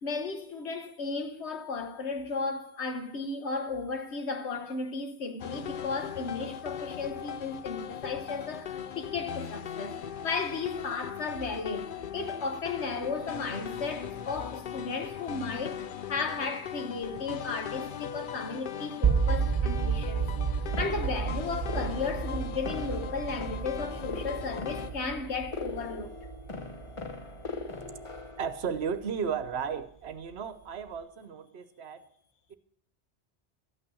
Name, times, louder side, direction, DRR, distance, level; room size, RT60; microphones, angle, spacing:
voice 1, 0.0-15.8 16.1-26.1, left 4 dB, 85° left, 1.5 m, -35 dB
sound 1, 5.4-24.9, left 8 dB, 55° left, 0.7 m, -39 dB
sound 2, 19.0-29.0, right 6 dB, 40° right, 0.8 m, -32 dB
sound 3, 20.7-28.4, left 3 dB, 30° left, 0.9 m, -41 dB
voice 2, 28.4-32.1 32.5-32.6, right 6 dB, 75° right, 1.1 m, -34 dB
12.5 x 8.9 x 6.3 m
omnidirectional pair, 1.1 m